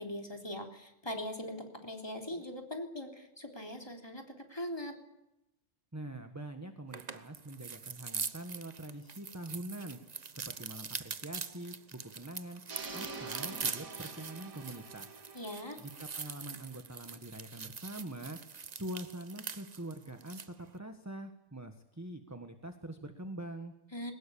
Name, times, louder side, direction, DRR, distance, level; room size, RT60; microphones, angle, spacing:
voice 1, 0.0-5.0 15.3-15.8 23.9-24.1, left 1 dB, 20° left, 3 dB, 3.5 m, -41 dB
voice 2, 5.9-10.0 10.3-12.6 12.9-15.1 15.8-18.4 18.7-23.7, right 1 dB, 10° right, 6 dB, 1.5 m, -44 dB
sound 1, 6.9-20.5, right 5 dB, 35° right, 0.9 m, -43 dB
sound 2, 12.7-16.7, right 4 dB, 85° right, 2.5 m, -47 dB
22.0 x 19.5 x 8.7 m, 0.88 s
omnidirectional pair, 1.4 m